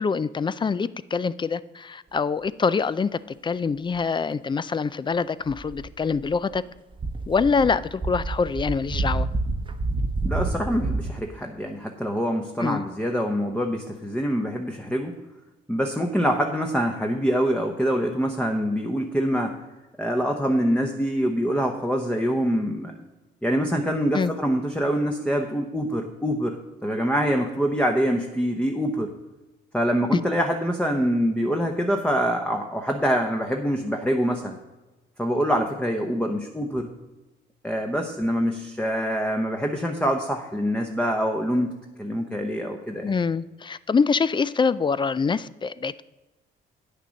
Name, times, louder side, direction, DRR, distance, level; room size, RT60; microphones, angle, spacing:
voice 1, 0.0-6.6 7.3-9.3 12.6-12.8 24.1-24.3 43.0-46.0, left 5 dB, 25° left, 0.4 m, -25 dB
sound 1, 5.5-6.6 6.9-11.1, right 3 dB, 25° right, 0.9 m, -28 dB
voice 2, 10.3-15.1 15.7-19.6 20.0-22.9 23.4-26.6 26.8-29.1 29.7-34.6 35.2-36.9 37.6-41.7 42.0-43.1, equal, 5° left, 0.9 m, -25 dB
9.1 x 6.7 x 6.3 m
cardioid pair, 90°, 20 cm